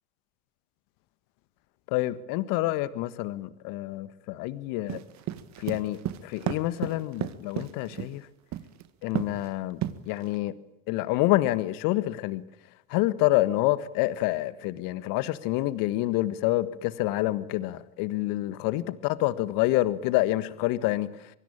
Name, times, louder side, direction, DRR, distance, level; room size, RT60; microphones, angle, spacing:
voice 1, 1.9-5.0 5.6-8.2 9.0-9.8 10.1-10.5 10.9-12.4 12.9-21.1, left 17 dB, 50° left, 1.7 m, -27 dB
sound 1, 4.9-8.1 8.5-8.8 9.2-9.5 9.8-10.4, right 13 dB, 40° right, 1.7 m, -32 dB
24.0 x 24.0 x 8.9 m
figure-of-eight pair, 80°, 44 cm